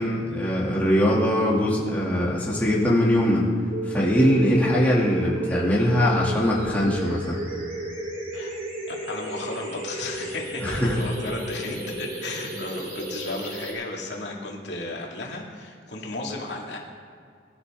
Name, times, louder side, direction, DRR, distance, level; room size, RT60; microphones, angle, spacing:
voice 1, 0.0-3.5 3.8-7.4 10.6-11.0, equal, 10° left, -6 dB, 2.6 m, -22 dB
sound 1, 3.7-13.7, right 1 dB, 50° right, 3.4 m, -33 dB
voice 2, 8.9-16.8, left 2 dB, 80° left, -1 dB, 2.4 m, -34 dB
22.0 x 11.5 x 3.7 m, 2.2 s
head